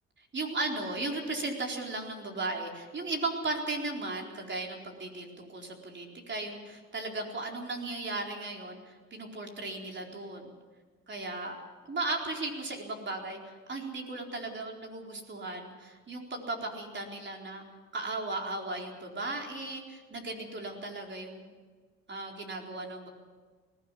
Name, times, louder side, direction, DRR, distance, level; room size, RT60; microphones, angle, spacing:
voice 1, 0.3-10.5 11.1-17.6 17.9-21.5 22.1-23.1, right 2 dB, 40° right, 1 dB, 4.3 m, -36 dB
20.5 x 16.0 x 8.4 m, 1.4 s
cardioid pair, 90°, 30 cm